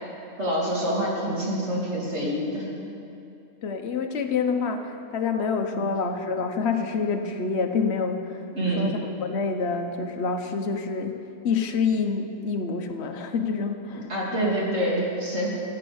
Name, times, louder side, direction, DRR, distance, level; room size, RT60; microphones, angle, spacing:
voice 1, 0.4-2.7 5.7-5.9 8.5-8.9 14.1-15.5, right 1 dB, 45° right, -5 dB, 3.2 m, -26 dB
voice 2, 3.6-8.5 8.8-11.2 11.4-14.1 14.4-14.5, left 5 dB, 50° left, 5 dB, 1.2 m, -27 dB
16.0 x 8.2 x 7.1 m, 2.6 s
omnidirectional pair, 1.5 m